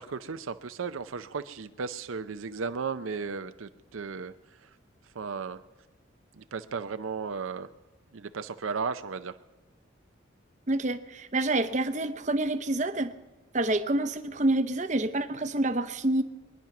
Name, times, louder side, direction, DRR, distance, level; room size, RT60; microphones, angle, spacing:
voice 1, 0.0-4.7 5.1-5.6 6.3-7.7 8.1-9.4, right 5 dB, 80° right, 10 dB, 0.6 m, -35 dB
voice 2, 10.7-13.1 13.5-16.2, right 2 dB, 35° right, 10 dB, 0.8 m, -27 dB
23.5 x 10.5 x 5.9 m, 1.2 s
head